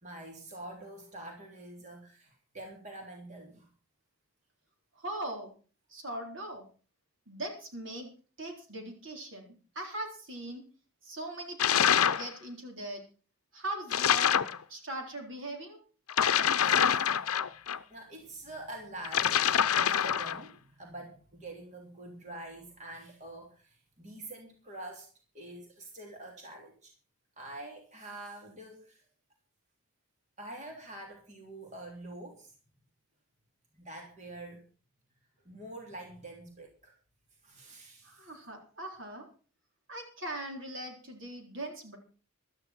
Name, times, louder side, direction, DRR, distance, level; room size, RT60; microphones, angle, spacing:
voice 1, 0.0-3.7 16.6-17.6 17.9-25.1 25.3-26.9 27.4-29.0 30.4-32.5 33.7-34.6 35.4-36.9 37.4-38.3, right 2 dB, 30° right, 0 dB, 3.3 m, -46 dB
voice 2, 5.0-5.5 5.9-6.7 7.3-8.1 8.4-10.6 11.0-13.0 13.5-14.4 14.7-15.8 38.0-39.3 39.9-42.0, right 1 dB, 55° right, 2 dB, 3.9 m, -40 dB
sound 1, 11.6-12.3 13.9-14.6 16.1-17.8 19.0-20.4, left 8 dB, 80° left, 0.7 m, -26 dB
16.0 x 12.5 x 4.4 m, 0.38 s
head